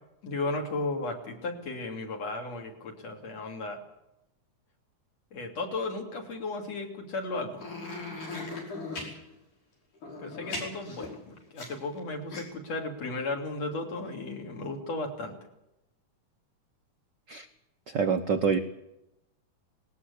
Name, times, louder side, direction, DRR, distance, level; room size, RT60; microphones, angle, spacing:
voice 1, 0.2-3.8 5.3-7.7 10.2-15.3, left 2 dB, 60° left, 2 dB, 4.2 m, -35 dB
sound 1, 7.6-9.1 10.0-12.0 12.3-12.4, left 3 dB, 85° left, 7.1 m, -38 dB
voice 2, 17.9-18.6, right 6 dB, 75° right, 7 dB, 1.0 m, -27 dB
19.5 x 18.5 x 8.4 m, 0.89 s
omnidirectional pair, 3.5 m